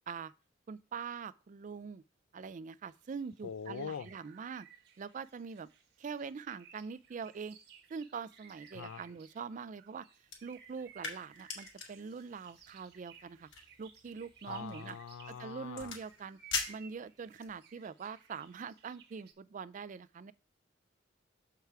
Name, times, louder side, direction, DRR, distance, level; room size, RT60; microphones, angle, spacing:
voice 1, 0.7-2.0 2.3-4.7 5.0-5.7 6.0-7.6 7.9-10.1 10.4-13.5 13.8-15.0 15.3-16.4 16.7-20.3, right 5 dB, 40° right, 0.3 m, -43 dB
sound 1, 2.9-19.3, right 7 dB, 55° right, 1.3 m, -60 dB
voice 2, 3.4-4.1 8.7-9.0 14.5-15.9, left 7 dB, 85° left, 0.4 m, -43 dB
sound 2, 10.2-17.6, left 5 dB, 70° left, 2.0 m, -44 dB
6.8 x 4.7 x 4.6 m
head